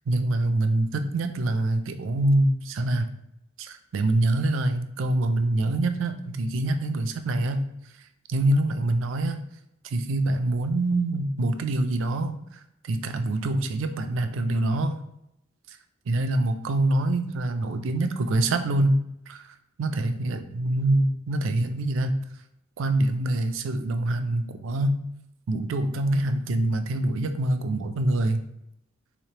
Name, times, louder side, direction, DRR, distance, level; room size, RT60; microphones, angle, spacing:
voice 1, 0.1-3.1 3.6-7.7 8.3-9.4 9.8-15.0 15.7-15.8 16.1-19.0 19.3-22.2 22.8-25.0 25.5-28.4, right 2 dB, 70° right, 9 dB, 0.4 m, -25 dB
3.5 x 3.2 x 2.8 m, 0.82 s
head